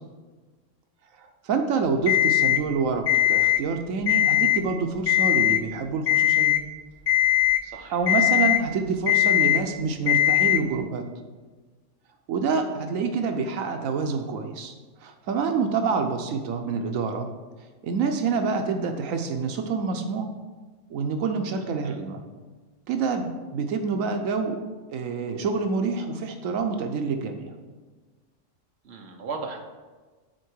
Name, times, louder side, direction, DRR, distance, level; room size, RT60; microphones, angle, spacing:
voice 1, 1.2-6.5 7.9-11.0 12.3-14.7 15.0-17.3 17.8-20.3 20.9-22.2 22.9-24.6 24.9-27.5, right 5 dB, 85° right, 5 dB, 1.1 m, -27 dB
Alarm, 2.1-2.6 3.1-3.6 4.0-4.6 5.1-5.6 6.1-6.6 7.1-7.6 8.1-8.6 9.1-9.6 10.1-10.6, left 13 dB, 70° left, 1.7 m, -20 dB
voice 2, 7.6-8.2 21.8-22.0 28.8-29.6, right 4 dB, 55° right, 3 dB, 1.2 m, -37 dB
9.2 x 4.6 x 6.2 m, 1.3 s
omnidirectional pair, 1.3 m